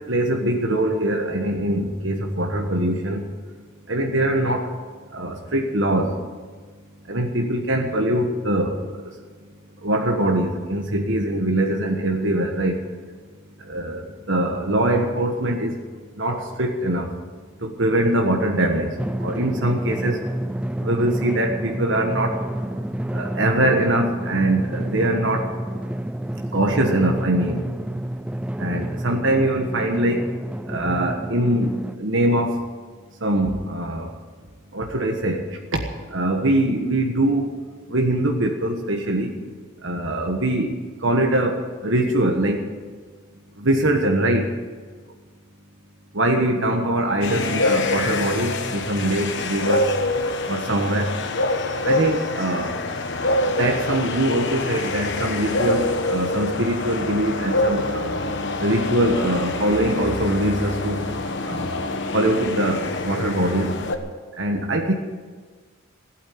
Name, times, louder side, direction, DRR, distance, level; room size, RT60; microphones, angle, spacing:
voice 1, 0.0-3.3 3.9-4.7 5.1-6.1 7.1-9.1 9.8-12.8 13.6-15.8 16.2-17.1 17.6-20.2 20.8-22.4 23.1-25.5 26.5-27.6 28.6-30.2 30.6-32.6 33.2-34.1 34.7-35.8 36.1-37.5 37.9-39.3 39.8-42.6 43.6-44.5 46.1-49.9 50.5-51.1 51.8-52.8 53.6-58.2 58.6-61.0 61.4-61.8 62.1-63.7 64.4-64.9, right 1 dB, 60° right, 2 dB, 1.4 m, -22 dB
Drum, 19.0-32.0, right 1 dB, 5° right, 0.3 m, -29 dB
sound 1, 47.2-64.0, left 2 dB, 55° left, 1.2 m, -26 dB
16.0 x 9.0 x 9.3 m, 1.5 s
head